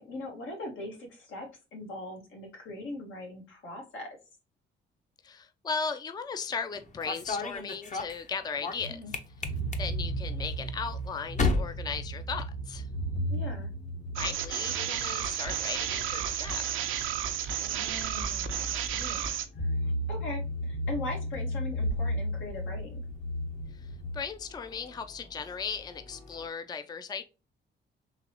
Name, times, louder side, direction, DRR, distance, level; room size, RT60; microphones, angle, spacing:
voice 1, 0.0-4.2 8.9-9.1 13.3-13.7 17.6-23.0, left 1 dB, 80° left, 1.6 m, -41 dB
voice 2, 5.2-9.0 9.8-12.9 14.2-16.7 23.7-27.2, left 5 dB, 20° left, 0.4 m, -37 dB
sound 1, 6.7-12.9 13.2-13.7 14.8-26.5, left 3 dB, 40° left, 0.8 m, -39 dB
sound 2, 8.8-17.3 17.7-17.8 19.5-24.2, equal, 65° left, 1.9 m, -34 dB
sound 3, 14.2-19.4, right 10 dB, 85° right, 0.6 m, -32 dB
3.9 x 3.0 x 2.9 m
cardioid pair, 90°, 20 cm